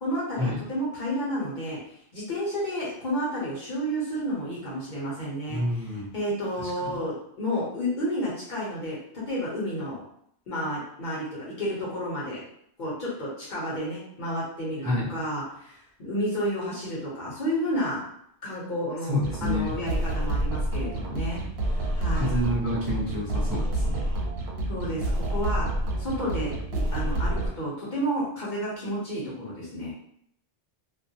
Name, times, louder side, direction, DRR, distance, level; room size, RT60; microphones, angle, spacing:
voice 1, 0.0-1.8 2.1-5.6 6.1-9.0 9.3-10.0 10.5-12.4 12.8-14.8 15.1-18.0 18.4-19.1 19.4-21.4 21.7-22.3 24.7-25.7 26.0-29.9, equal, 50° left, -7 dB, 0.9 m, -31 dB
voice 2, 5.5-6.1 6.6-7.0 14.8-15.1 19.1-19.7 22.1-24.1, left 1 dB, 25° right, -10 dB, 0.6 m, -28 dB
sound 1, 19.2-27.5, right 1 dB, 70° right, 0.8 m, -28 dB
2.3 x 2.2 x 2.7 m, 0.70 s
omnidirectional pair, 1.1 m